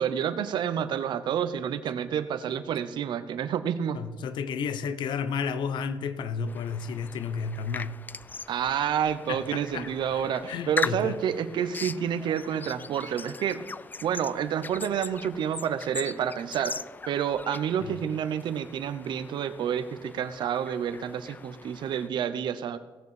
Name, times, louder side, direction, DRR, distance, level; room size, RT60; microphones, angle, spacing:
voice 1, 0.0-4.0 8.5-13.6 14.0-16.8 17.1-22.8, right 8 dB, 70° right, 0.8 m, -29 dB
voice 2, 3.9-8.0 9.3-11.2 17.8-18.0, left 6 dB, 70° left, 0.8 m, -32 dB
sound 1, 6.5-22.1, left 4 dB, 20° left, 0.3 m, -40 dB
17.0 x 6.9 x 5.0 m
cardioid pair, 85°, 8 cm